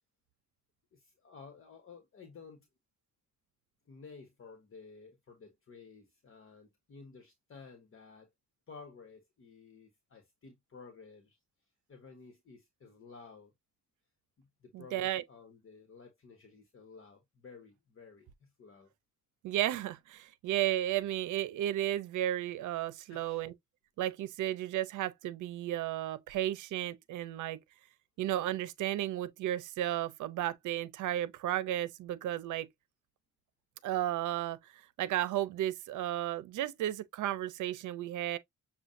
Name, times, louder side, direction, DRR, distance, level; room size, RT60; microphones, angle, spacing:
voice 1, 0.9-2.7 3.9-8.3 8.7-11.4 11.9-13.5 14.4-18.9 23.1-23.5, left 4 dB, 45° left, 1.2 m, -54 dB
voice 2, 14.7-15.2 19.4-23.5 24.0-27.6 28.2-32.7 33.8-38.4, right 13 dB, 80° right, 0.7 m, -33 dB
7.1 x 2.4 x 2.6 m
cardioid pair, 90°, 30 cm